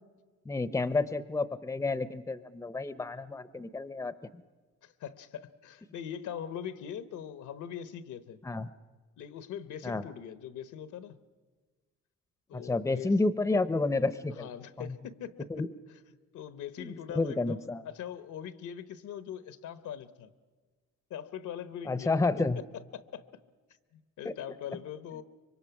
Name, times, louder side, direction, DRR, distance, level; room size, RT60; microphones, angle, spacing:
voice 1, 0.5-4.4 8.4-8.7 9.8-10.0 12.5-14.5 14.8-15.0 15.5-15.7 16.8-17.8 21.8-22.6 24.2-24.3, left 3 dB, 10° left, 15 dB, 0.7 m, -30 dB
voice 2, 4.8-8.4 9.2-11.2 12.5-13.1 14.3-15.5 16.3-20.3 21.1-22.1 22.9-23.2 23.9-25.2, left 9 dB, 75° left, 13 dB, 1.0 m, -42 dB
25.0 x 23.0 x 5.9 m, 1.4 s
cardioid pair, 90°, 30 cm